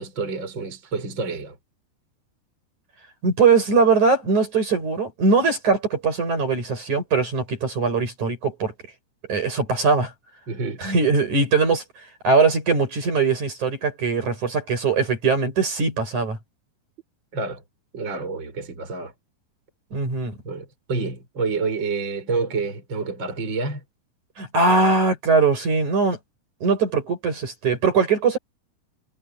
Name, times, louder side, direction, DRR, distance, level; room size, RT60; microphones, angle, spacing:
voice 1, 0.0-1.6 10.5-10.8 17.3-17.6 17.9-19.1 20.4-23.8, right 4 dB, 25° right, 6.4 m, -28 dB
voice 2, 3.2-8.7 9.3-10.1 10.8-11.8 12.2-16.4 19.9-20.3 24.4-26.2 26.6-28.4, right 4 dB, 45° right, 8.4 m, -21 dB
omnidirectional pair, 4.9 m